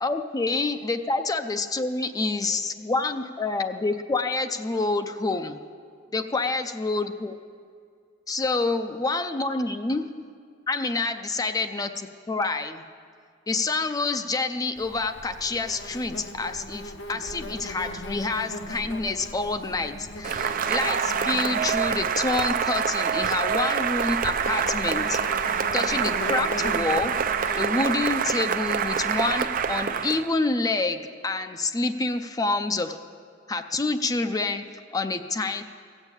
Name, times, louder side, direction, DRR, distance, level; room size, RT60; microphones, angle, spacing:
voice 1, 0.0-5.6 6.1-7.4 8.3-10.1 10.7-12.8 13.5-25.2 25.5-27.1 27.6-33.0 33.5-34.6 34.9-35.6, left 3 dB, 20° left, 8 dB, 0.4 m, -27 dB
Insect, 14.8-29.9, left 1 dB, 65° left, 0.9 m, -39 dB
Cheering / Applause, 20.2-30.3, right 7 dB, 45° right, 0.4 m, -26 dB
16.5 x 7.1 x 8.2 m, 2.2 s
head